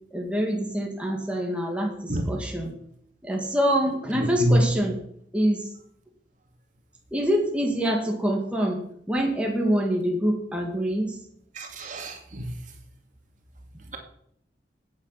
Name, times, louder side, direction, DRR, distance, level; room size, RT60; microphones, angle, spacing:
voice 1, 0.1-2.7 3.2-5.0 5.3-5.7 7.1-11.2, equal, 5° right, 0 dB, 2.3 m, -25 dB
voice 2, 11.6-12.4, right 1 dB, 45° right, 3 dB, 2.5 m, -26 dB
15.0 x 8.8 x 6.0 m, 0.69 s
head